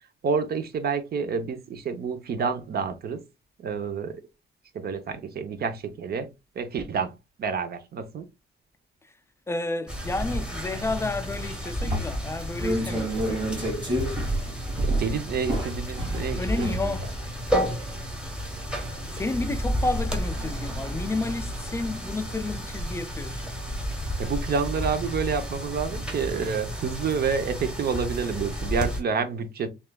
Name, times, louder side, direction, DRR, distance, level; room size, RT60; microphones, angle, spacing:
voice 1, 0.2-3.2 3.6-4.2 4.7-6.3 6.6-7.1 7.4-8.3 14.8-16.9 24.2-29.7, right 6 dB, 55° right, 0.7 m, -29 dB
voice 2, 9.5-13.5 16.4-17.1 19.1-23.5, left 2 dB, 15° left, 0.3 m, -31 dB
sound 1, 9.9-29.0, equal, 5° right, 1.1 m, -32 dB
sound 2, 11.8-24.5 24.8-25.1, right 1 dB, 25° right, 2.3 m, -32 dB
6.4 x 2.4 x 2.2 m
wide cardioid pair, 150°, 20 cm